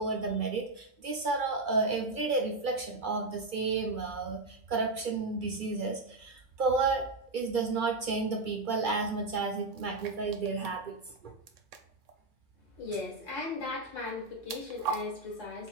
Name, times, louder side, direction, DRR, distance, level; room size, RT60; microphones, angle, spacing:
voice 1, 0.0-7.1 7.3-11.0, right 3 dB, 55° right, 2 dB, 0.7 m, -31 dB
sound 1, 6.9-7.0 9.7-10.8 11.1-11.2 11.5-12.1 14.1-15.0, right 5 dB, 85° right, 0.9 m, -39 dB
voice 2, 12.8-15.7, left 3 dB, 80° left, -2 dB, 1.9 m, -37 dB
4.4 x 3.7 x 2.3 m, 0.66 s
omnidirectional pair, 1.3 m